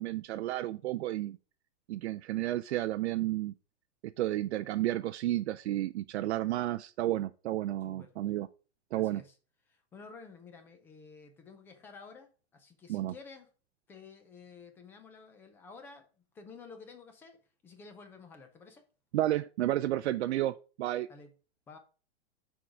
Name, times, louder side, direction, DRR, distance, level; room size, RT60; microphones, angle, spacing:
voice 1, 0.0-1.4 1.9-3.5 4.2-8.5 8.9-9.2 12.9-13.1 19.1-21.1, right 14 dB, 75° right, 0.5 m, -32 dB
voice 2, 7.8-8.1 8.9-9.4 9.7-13.5 13.9-16.1 16.3-17.4 17.6-18.8 21.1-21.3 21.7-21.8, left 4 dB, 5° left, 0.3 m, -52 dB
6.2 x 4.7 x 4.8 m
supercardioid pair, 155°, 33 cm